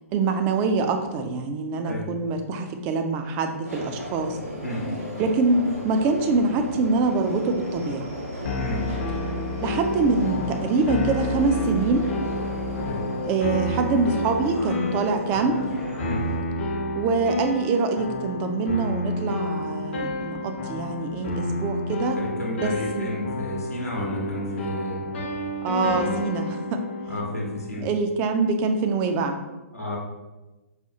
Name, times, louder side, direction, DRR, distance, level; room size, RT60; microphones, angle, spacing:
voice 1, 0.1-4.4 5.2-8.1 9.6-12.0 13.2-15.7 17.0-22.2 22.5-23.1 25.6-26.8 27.8-29.4, right 4 dB, 25° right, 6 dB, 0.3 m, -24 dB
Subway metro underground, 3.6-16.4, equal, 85° right, 1.2 m, -35 dB
voice 2, 4.6-5.0 8.5-8.9 12.8-13.1 16.0-16.3 22.2-25.3 25.8-26.2 27.1-27.9 29.7-30.0, equal, 85° left, -3 dB, 0.9 m, -31 dB
sound 1, 8.4-27.7, left 2 dB, 50° left, 0.6 m, -30 dB
4.8 x 2.3 x 2.8 m, 1.1 s
figure-of-eight pair, 120°, 8 cm